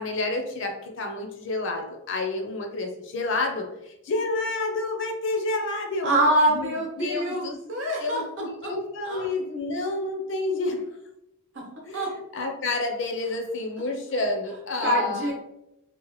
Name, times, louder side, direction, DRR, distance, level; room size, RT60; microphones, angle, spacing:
voice 1, 0.0-6.1 6.5-7.6 8.0-10.9 11.9-15.3, left 2 dB, 55° left, 3 dB, 0.5 m, -29 dB
voice 2, 6.0-8.7 9.0-9.3 11.9-12.1 14.8-15.3, right 1 dB, 60° right, -1 dB, 0.8 m, -25 dB
2.9 x 2.1 x 3.0 m, 0.85 s
head